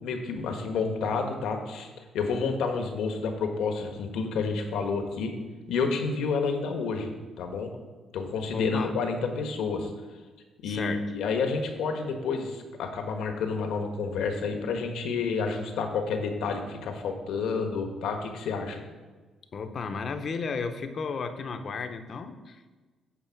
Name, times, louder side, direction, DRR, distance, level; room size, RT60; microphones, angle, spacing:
voice 1, 0.0-5.3 5.7-7.1 7.4-7.7 8.1-9.9 10.6-18.8, left 4 dB, 85° left, 4 dB, 1.3 m, -29 dB
voice 2, 8.5-8.9 10.6-11.1 19.5-22.8, left 5 dB, 50° left, 9 dB, 0.8 m, -34 dB
8.8 x 4.2 x 7.1 m, 1.3 s
cardioid pair, 110°, 0 cm